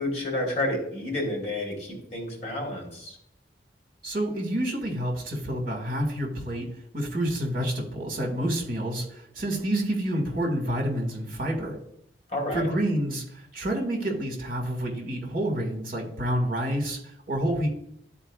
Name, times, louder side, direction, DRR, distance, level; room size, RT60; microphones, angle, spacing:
voice 1, 0.0-3.2 12.3-12.7, left 1 dB, 40° left, 0 dB, 2.8 m, -30 dB
voice 2, 4.0-6.7 6.9-11.8 12.5-17.0 17.3-17.7, right 1 dB, 50° right, 1 dB, 2.0 m, -28 dB
12.5 x 4.5 x 2.4 m, 0.73 s
head